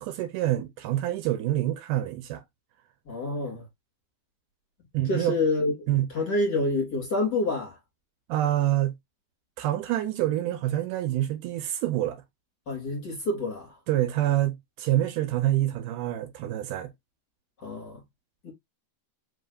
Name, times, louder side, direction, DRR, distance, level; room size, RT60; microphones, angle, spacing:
voice 1, 0.0-2.4 4.9-5.4 5.9-6.1 8.3-8.9 9.6-12.2 13.9-16.9, right 13 dB, 80° right, 2.1 m, -26 dB
voice 2, 3.1-3.6 5.1-5.7 6.1-7.8 12.7-13.8 17.6-18.0 18.4-18.5, left 2 dB, 35° left, 3.0 m, -27 dB
4.9 x 4.0 x 2.5 m
omnidirectional pair, 3.8 m